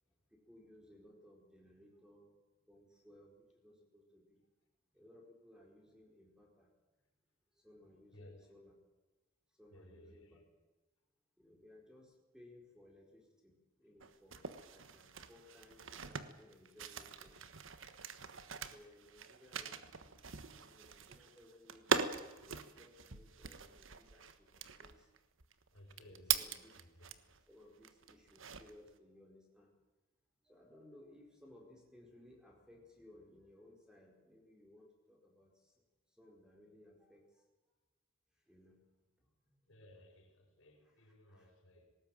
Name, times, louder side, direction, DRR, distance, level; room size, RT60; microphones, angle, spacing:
voice 1, 0.3-2.3 2.7-4.4 4.9-6.7 7.6-8.7 9.6-10.4 11.4-17.4 18.5-25.1 26.0-26.7 27.5-29.7 30.4-35.7 36.1-37.4 38.5-38.8 39.4-39.5 41.0-41.5, left 1 dB, 5° right, 0 dB, 4.7 m, -62 dB
voice 2, 8.1-8.5 9.7-10.5 25.7-27.2 39.7-42.0, left 1 dB, 70° left, 2 dB, 5.8 m, -60 dB
sound 1, 14.0-27.4 27.8-28.9, right 6 dB, 65° right, 1.4 m, -42 dB
19.5 x 18.5 x 9.1 m, 1.1 s
head